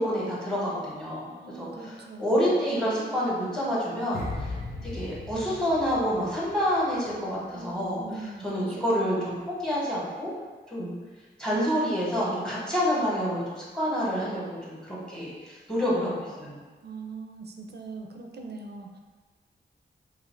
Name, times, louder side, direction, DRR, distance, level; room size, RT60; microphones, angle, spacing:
voice 1, 0.0-4.5 4.8-8.0 8.4-10.3 10.7-10.9 11.4-16.6, equal, 5° left, -6 dB, 1.0 m, -28 dB
voice 2, 1.3-2.5 7.5-9.4 16.8-19.0, right 3 dB, 55° right, 2 dB, 0.4 m, -42 dB
sound 1, 4.1-7.3 7.6-7.9, left 2 dB, 55° left, 0.5 m, -38 dB
2.7 x 2.5 x 3.0 m, 1.4 s
cardioid pair, 65°, 20 cm